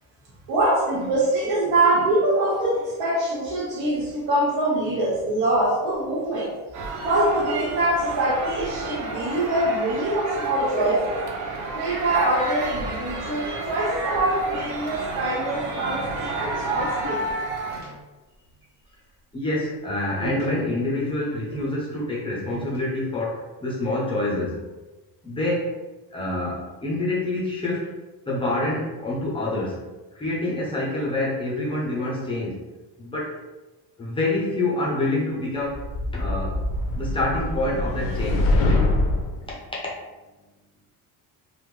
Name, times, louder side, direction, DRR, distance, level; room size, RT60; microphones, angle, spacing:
voice 1, 0.5-6.6 7.0-11.2 11.7-17.3, right 1 dB, 90° right, -4 dB, 1.2 m, -24 dB
sound 1, 3.6-6.7 7.0-10.0 11.3-13.3 13.7-19.1 19.3-19.5 19.9-20.0 20.2-21.1 21.5-23.2, right 3 dB, 25° right, 0.8 m, -45 dB
sound 2, 6.7-17.8, right 3 dB, 55° right, 0.6 m, -31 dB
voice 2, 19.3-24.7 25.2-25.8 26.1-27.9 28.3-32.6 33.0-33.4 34.0-35.8 36.1-36.6 36.9-38.6 39.4-39.6, left 2 dB, 15° left, -5 dB, 0.4 m, -27 dB
sound 3, 35.7-39.4, left 2 dB, 80° left, 0.6 m, -24 dB
3.3 x 2.1 x 3.1 m, 1.2 s
cardioid pair, 170°, 36 cm